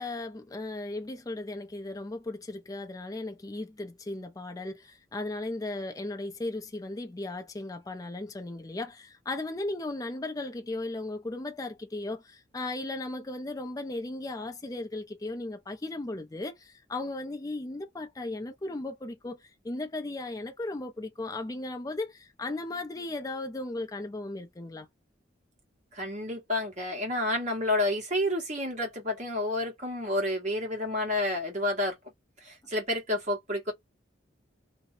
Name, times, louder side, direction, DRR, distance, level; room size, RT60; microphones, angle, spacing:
voice 1, 0.0-24.9, left 2 dB, 20° left, 0.4 m, -36 dB
voice 2, 25.9-32.0 32.4-33.7, left 1 dB, 40° right, 1.3 m, -30 dB
2.7 x 2.1 x 2.6 m
head